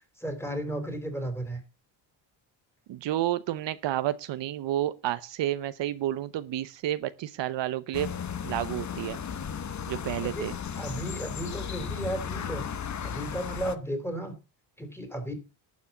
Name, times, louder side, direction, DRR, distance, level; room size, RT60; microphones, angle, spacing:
voice 1, 0.2-1.6 10.1-10.5 10.8-12.6 13.0-14.3 14.8-15.3, right 1 dB, 5° left, 3.6 m, -34 dB
voice 2, 2.9-8.1 8.4-9.2 9.9-10.5, right 13 dB, 65° right, 0.9 m, -30 dB
sound 1, 7.9-13.8, left 7 dB, 35° left, 1.1 m, -35 dB
12.0 x 6.3 x 7.1 m
cardioid pair, 125°, 47 cm